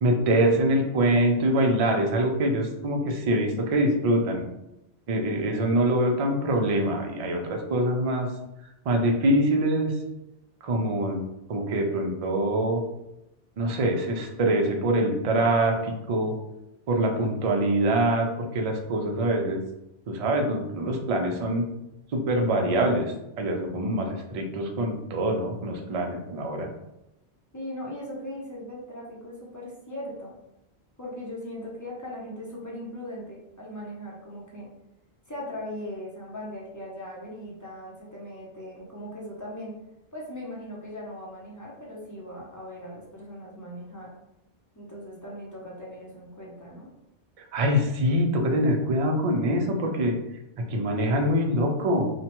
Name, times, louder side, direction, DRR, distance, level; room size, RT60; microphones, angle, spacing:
voice 1, 0.0-4.5 5.1-8.3 8.9-9.9 10.6-12.8 13.6-16.3 16.9-19.6 20.1-21.7 22.1-26.7 47.5-50.2 50.7-52.1, right 1 dB, 55° right, 2 dB, 0.4 m, -24 dB
voice 2, 27.5-30.3 31.0-34.7 35.3-39.7 40.1-44.1 44.7-46.9, left 1 dB, 20° left, -5 dB, 0.5 m, -39 dB
2.9 x 2.1 x 2.9 m, 0.88 s
omnidirectional pair, 1.1 m